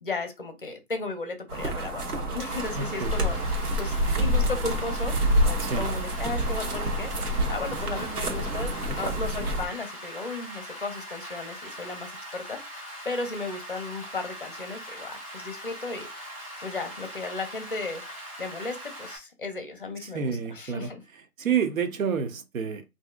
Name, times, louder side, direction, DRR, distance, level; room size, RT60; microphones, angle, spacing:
voice 1, 0.0-5.2 5.4-7.1 7.5-16.3 16.6-21.0, left 3 dB, 40° left, 0.6 m, -35 dB
sound 1, 1.5-9.7, equal, 85° right, 1.1 m, -27 dB
Rain, 2.5-19.2, equal, 25° right, 0.8 m, -41 dB
voice 2, 2.8-3.1 5.6-5.9 8.9-9.0 20.0-20.9 21.4-22.8, right 7 dB, 65° right, 0.7 m, -29 dB
3.4 x 2.7 x 2.3 m
hypercardioid pair, 170°, 45 cm